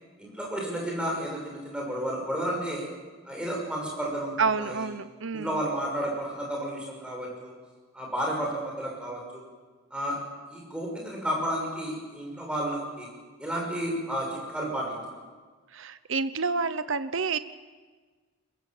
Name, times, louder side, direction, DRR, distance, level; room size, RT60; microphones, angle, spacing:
voice 1, 0.2-2.9 3.3-4.9 5.3-7.5 7.9-9.4 9.9-10.1 10.5-13.1 13.4-15.0, right 1 dB, 5° right, -1 dB, 6.0 m, -32 dB
voice 2, 4.4-5.6 15.7-17.4, right 4 dB, 55° right, 13 dB, 0.9 m, -28 dB
23.5 x 21.0 x 7.4 m, 1.4 s
head